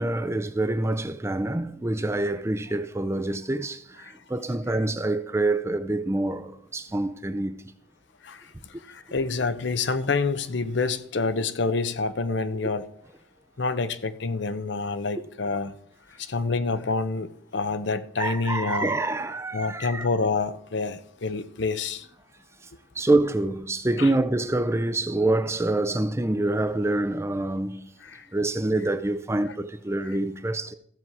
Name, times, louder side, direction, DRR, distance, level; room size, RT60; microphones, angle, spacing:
voice 1, 0.0-7.6 18.2-20.1 23.0-27.9 28.3-30.7, right 2 dB, 15° right, 0.5 m, -26 dB
voice 2, 8.2-12.9 13.6-15.7 16.2-18.9 19.5-22.1 24.0-24.1 28.0-28.3, left 4 dB, 60° left, 0.6 m, -28 dB
14.5 x 7.3 x 4.7 m
head